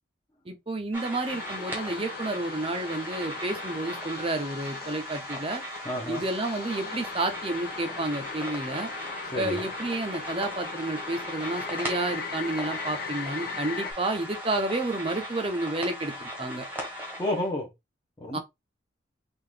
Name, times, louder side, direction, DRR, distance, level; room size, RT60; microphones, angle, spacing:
voice 1, 0.5-5.6 6.1-8.9 9.4-16.7 18.3-18.4, right 2 dB, 30° right, 0.6 m, -30 dB
sound 1, 0.9-17.5, equal, 10° right, 1.1 m, -38 dB
sound 2, 1.3-13.9, left 5 dB, 50° left, 0.7 m, -39 dB
voice 2, 5.8-6.2 9.3-9.6 17.2-17.7 18.2-18.4, left 1 dB, 15° left, 0.9 m, -30 dB
3.8 x 2.5 x 3.3 m
head